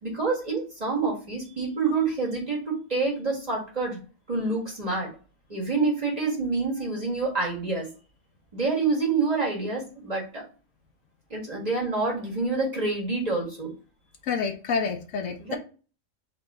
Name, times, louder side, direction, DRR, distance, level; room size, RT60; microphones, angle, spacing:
voice 1, 0.0-4.0 4.3-5.1 5.5-7.9 8.5-10.5 11.3-13.7 15.4-15.6, right 3 dB, 30° right, 1.7 m, -27 dB
voice 2, 14.3-15.6, left 5 dB, 70° left, 0.9 m, -28 dB
3.5 x 3.0 x 4.7 m
omnidirectional pair, 1.4 m